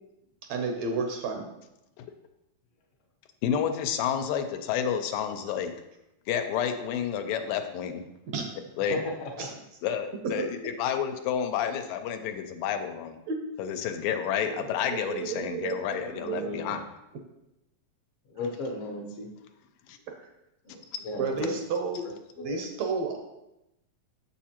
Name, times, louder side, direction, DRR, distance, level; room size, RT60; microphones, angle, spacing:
voice 1, 0.5-1.5 8.3-8.5 9.4-9.5 10.4-10.5 13.3-13.5 14.5-14.6 14.9-16.7 21.2-22.1 22.4-23.2, right 4 dB, 75° right, 3 dB, 1.6 m, -32 dB
voice 2, 3.4-5.7 6.3-8.0 8.8-9.0 9.8-13.2 13.6-16.8 19.9-20.0, left 8 dB, 90° left, 7 dB, 2.3 m, -30 dB
voice 3, 8.9-9.5 16.1-16.7 18.3-19.3 20.6-21.5 22.3-22.6, left 2 dB, 75° left, 1 dB, 1.3 m, -35 dB
7.2 x 6.9 x 2.9 m, 0.88 s
omnidirectional pair, 3.9 m